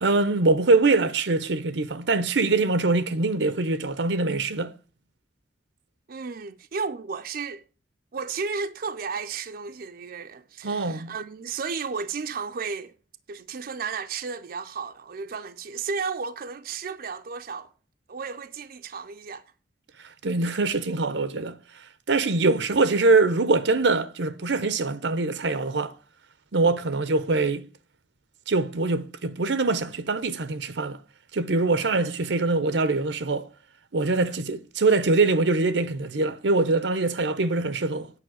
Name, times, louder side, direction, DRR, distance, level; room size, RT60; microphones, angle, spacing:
voice 1, 0.0-4.7 10.6-11.1 20.0-21.6 22.1-25.9 26.5-27.7 28.5-31.0 31.3-33.5 33.9-38.1, right 3 dB, 90° right, 0.8 m, -23 dB
voice 2, 6.1-7.6 8.1-12.9 13.3-17.7 18.1-19.4, right 5 dB, 55° right, 0.5 m, -33 dB
9.1 x 5.6 x 7.7 m
head